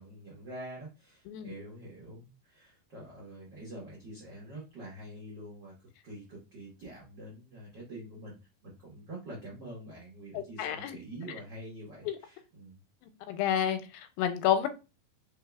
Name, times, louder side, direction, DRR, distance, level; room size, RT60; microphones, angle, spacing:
voice 1, 0.0-8.4 8.6-12.8, right 1 dB, 75° right, -4 dB, 1.0 m, -46 dB
voice 2, 10.3-11.0 12.1-12.2 13.3-14.7, left 10 dB, 90° left, 9 dB, 2.4 m, -30 dB
4.7 x 3.7 x 2.3 m, 0.29 s
omnidirectional pair, 4.1 m